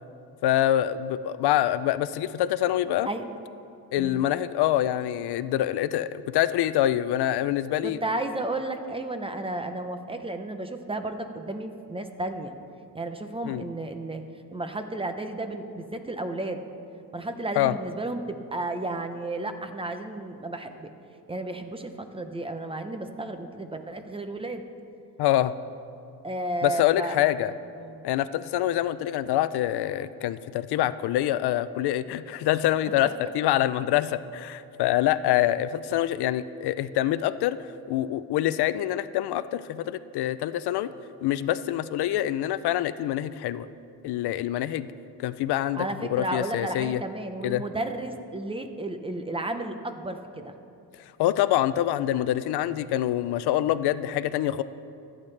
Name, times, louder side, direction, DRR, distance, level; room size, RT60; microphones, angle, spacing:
voice 1, 0.4-3.1 3.9-8.0 13.4-13.6 17.6-17.7 25.2-25.5 26.6-27.5 28.0-37.6 37.9-40.9 41.2-43.7 44.0-44.9 45.2-47.0 47.4-47.6 51.2-54.6, left 13 dB, 80° left, 14 dB, 0.5 m, -25 dB
voice 2, 7.8-12.6 12.9-14.2 14.5-16.6 17.1-20.9 21.3-24.6 26.2-27.2 27.8-28.0 33.0-33.1 45.8-50.5, right 2 dB, 15° right, 7 dB, 0.6 m, -33 dB
25.0 x 8.8 x 3.3 m, 2.7 s
cardioid pair, 160°, 39 cm